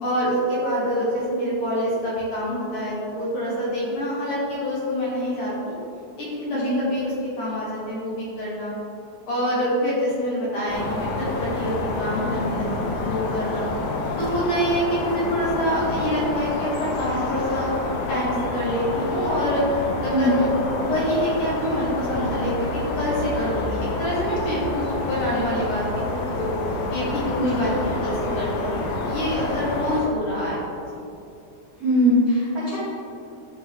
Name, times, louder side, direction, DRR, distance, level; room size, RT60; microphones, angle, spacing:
voice 1, 0.0-5.7 6.2-7.1 7.4-8.7 9.3-13.7 14.2-17.7 18.1-25.8 26.1-26.5 26.9-27.7 28.0-30.6, equal, 60° left, -7 dB, 2.6 m, -26 dB
sound 1, 10.7-30.0, left 2 dB, 85° left, 3.1 m, -28 dB
voice 2, 31.8-32.8, equal, 50° right, -12 dB, 1.0 m, -21 dB
10.5 x 4.3 x 3.7 m, 2.6 s
omnidirectional pair, 4.9 m